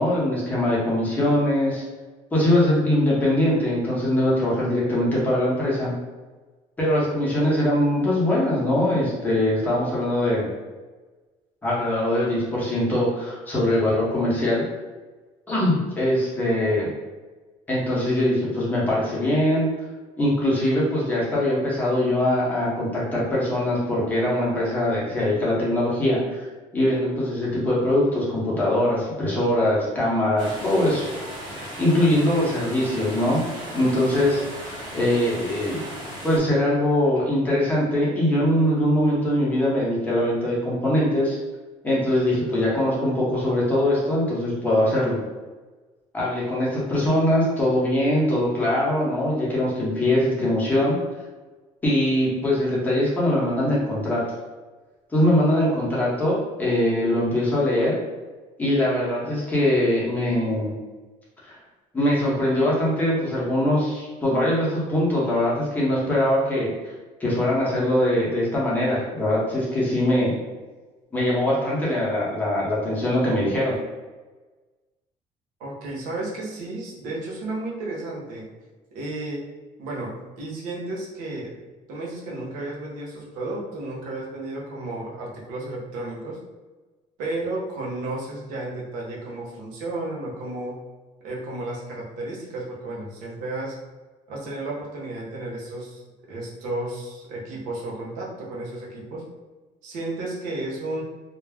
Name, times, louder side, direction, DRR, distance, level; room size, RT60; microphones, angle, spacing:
voice 1, 0.0-1.8 2.3-5.9 6.8-10.5 11.6-14.6 15.5-16.9 17.7-19.7 20.2-26.5 26.7-31.0 31.5-33.4 33.7-35.8 36.2-41.4 41.8-45.2 46.1-51.0 51.8-54.2 55.1-58.0 58.6-60.7 61.5-61.6 61.9-66.7 67.2-70.3 71.1-73.8, left 1 dB, 15° left, -7 dB, 0.7 m, -22 dB
sound 1, 30.4-36.4, equal, 35° right, 0.6 m, -36 dB
voice 2, 75.6-78.5 78.9-79.4 79.8-81.6 81.9-86.4 87.2-90.8 91.2-93.8 94.3-96.0 96.3-99.3 99.8-101.0, right 2 dB, 90° right, -3 dB, 0.8 m, -33 dB
2.3 x 2.0 x 3.3 m, 1.3 s
cardioid pair, 175°, 13 cm